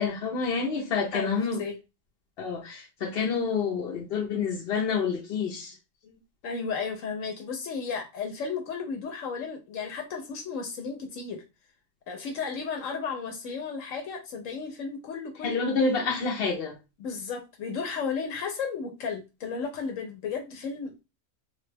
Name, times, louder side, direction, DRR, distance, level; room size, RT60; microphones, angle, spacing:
voice 1, 0.0-1.6 2.4-5.7 15.4-16.7, left 5 dB, 60° left, 0.8 m, -28 dB
voice 2, 1.1-1.8 6.0-11.4 12.1-15.7 17.0-21.0, left 5 dB, 80° left, 1.0 m, -34 dB
3.2 x 2.1 x 3.3 m
omnidirectional pair, 1.3 m